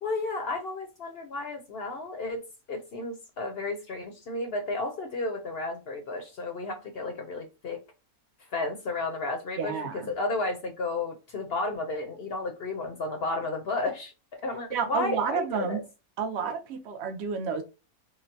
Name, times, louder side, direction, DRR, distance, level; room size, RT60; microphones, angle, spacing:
voice 1, 0.0-7.8 8.5-15.8, left 2 dB, 55° left, 0.7 m, -33 dB
voice 2, 9.6-10.1 14.7-15.8 16.2-17.6, right 6 dB, 60° right, 0.7 m, -30 dB
3.8 x 2.0 x 2.6 m
omnidirectional pair, 1.5 m